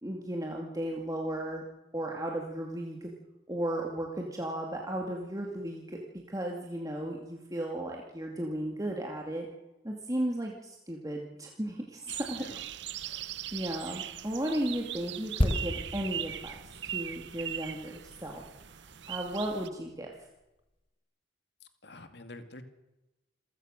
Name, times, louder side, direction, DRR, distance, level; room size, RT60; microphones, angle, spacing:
voice 1, 0.0-1.6 1.9-3.1 3.5-9.5 9.8-12.5 13.0-13.2 13.5-18.5 19.1-20.1, right 1 dB, 20° right, 0 dB, 2.4 m, -35 dB
sound 1, 12.1-19.7, right 11 dB, 65° right, 0.7 m, -40 dB
sound 2, 15.4-19.0 19.3-19.5, left 1 dB, 30° left, 1.4 m, -34 dB
voice 2, 21.8-22.6, left 2 dB, 60° left, 8 dB, 2.3 m, -46 dB
28.0 x 15.5 x 6.6 m, 0.99 s
head